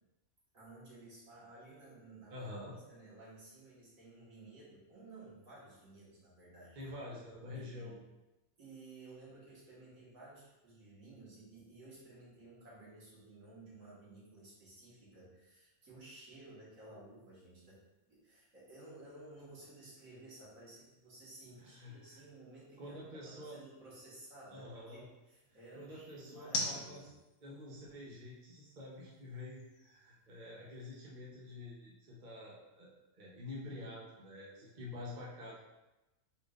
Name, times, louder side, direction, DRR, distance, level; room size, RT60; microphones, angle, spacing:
voice 1, 0.5-2.5 2.9-6.9 7.5-8.0 8.6-17.8 18.1-27.1, right 2 dB, 65° right, -7 dB, 2.1 m, -55 dB
voice 2, 2.3-2.7 6.8-8.0 21.6-22.2 22.8-23.6 24.5-25.1 25.8-27.1 27.4-35.6, left 2 dB, 40° right, -5 dB, 0.9 m, -48 dB
sound 1, 16.7-31.0, left 2 dB, 80° left, 1.3 m, -49 dB
5.0 x 4.4 x 2.5 m, 0.98 s
omnidirectional pair, 1.5 m